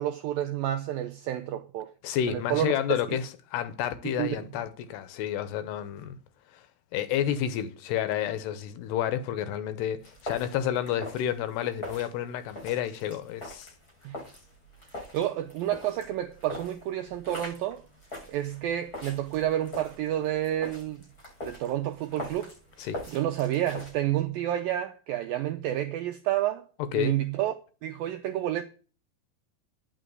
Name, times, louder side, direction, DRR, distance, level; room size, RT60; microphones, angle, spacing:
voice 1, 0.0-1.9 2.3-2.7 4.0-4.4 14.0-14.2 15.0-17.9 18.3-21.0 21.5-26.7 26.9-27.5 27.8-28.6, right 12 dB, 85° right, 2.0 m, -30 dB
voice 2, 2.0-6.2 6.5-6.6 6.9-13.7 22.8-23.0 26.8-27.2, left 10 dB, 80° left, 2.9 m, -30 dB
sound 1, 10.0-23.9, left 1 dB, 20° left, 7.2 m, -43 dB
10.0 x 6.1 x 7.9 m
omnidirectional pair, 4.9 m